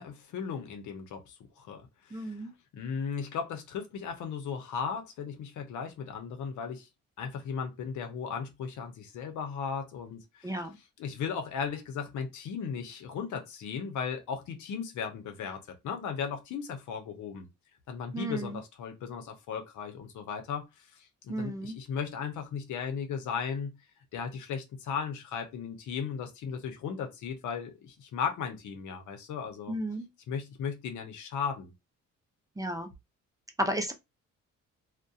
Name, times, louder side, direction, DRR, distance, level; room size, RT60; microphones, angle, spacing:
voice 1, 0.0-2.3 2.7-6.9 7.2-10.5 11.0-17.5 17.9-23.7 24.1-29.8 30.3-31.7, left 6 dB, 80° left, 0.7 m, -36 dB
voice 2, 2.1-2.5 10.4-10.8 18.1-18.6 21.3-21.8 29.7-30.1 32.6-32.9 33.6-33.9, right 1 dB, 10° right, 0.4 m, -33 dB
2.3 x 2.1 x 2.6 m
cardioid pair, 90°, 30 cm